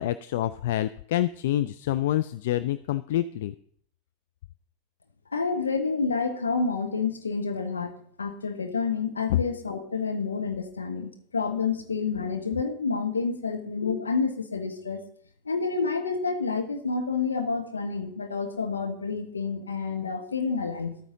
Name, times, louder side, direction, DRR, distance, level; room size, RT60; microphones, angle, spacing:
voice 1, 0.0-3.5 9.3-9.4, left 13 dB, 55° left, 14 dB, 0.3 m, -27 dB
voice 2, 5.3-15.0 15.4-21.0, left 4 dB, 75° left, 6 dB, 1.1 m, -29 dB
12.0 x 9.0 x 3.8 m, 0.62 s
figure-of-eight pair, 85°, 0 cm